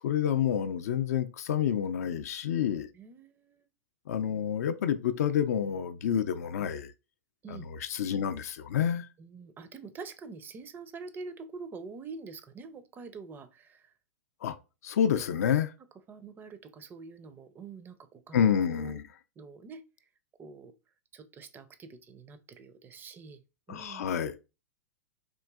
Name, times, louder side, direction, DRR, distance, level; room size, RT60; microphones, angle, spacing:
voice 1, 0.0-2.9 4.1-6.9 7.5-9.1 14.4-14.6 14.8-15.7 18.3-19.0 23.7-24.4, left 9 dB, 65° left, 0.4 m, -28 dB
voice 2, 2.9-3.7 7.4-7.7 9.2-13.9 15.4-15.5 16.1-19.0 19.4-19.8 20.4-20.7 21.1-23.4 23.7-24.1, right 4 dB, 20° right, 0.4 m, -46 dB
3.7 x 2.6 x 2.3 m
hypercardioid pair, 105°, 9 cm